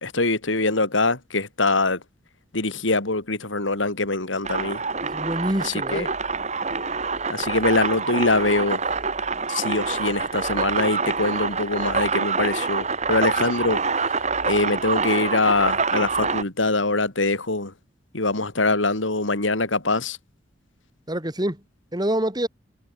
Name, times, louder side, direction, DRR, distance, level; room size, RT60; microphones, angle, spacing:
voice 1, 0.0-2.0 2.5-4.8 5.6-6.1 7.3-8.8 9.5-13.8 14.4-17.7 18.1-20.2, left 2 dB, 80° left, 3.5 m, -23 dB
sound 1, 4.4-16.4, right 4 dB, 35° right, 5.3 m, -26 dB
voice 2, 5.1-6.1 21.1-21.6 21.9-22.5, right 1 dB, 20° right, 3.3 m, -26 dB
head